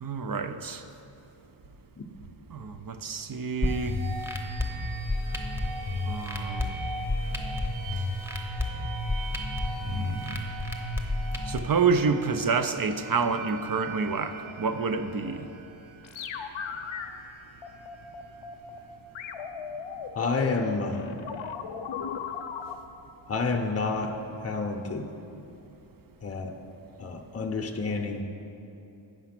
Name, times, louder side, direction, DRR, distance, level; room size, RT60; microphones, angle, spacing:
voice 1, 0.0-0.8 2.5-4.0 6.1-6.8 9.8-10.4 11.5-15.5, right 5 dB, 45° right, 9 dB, 0.5 m, -28 dB
sound 1, 3.6-11.6, left 2 dB, 5° right, 0.9 m, -31 dB
sound 2, 3.6-19.3, right 3 dB, 75° right, 1.2 m, -41 dB
sound 3, 16.0-17.1 17.6-18.8 19.1-22.7, left 7 dB, 70° left, 0.6 m, -36 dB
voice 2, 20.1-21.2 23.3-24.1 24.4-25.0 26.2-26.5 27.0-28.2, left 4 dB, 30° left, 2 dB, 0.7 m, -29 dB
8.8 x 5.8 x 5.9 m, 2.9 s
wide cardioid pair, 80°, 48 cm